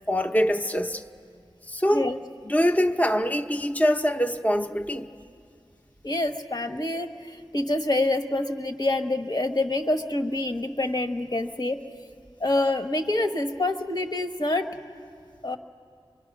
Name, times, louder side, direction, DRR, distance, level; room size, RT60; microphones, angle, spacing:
voice 1, 0.1-1.0 1.7-2.1 2.4-5.1, equal, 15° left, 0.8 m, -24 dB
voice 2, 6.0-11.8 12.4-14.6 15.4-15.6, left 2 dB, 45° left, 1.4 m, -26 dB
24.0 x 24.0 x 6.2 m
wide cardioid pair, 60°, 10 cm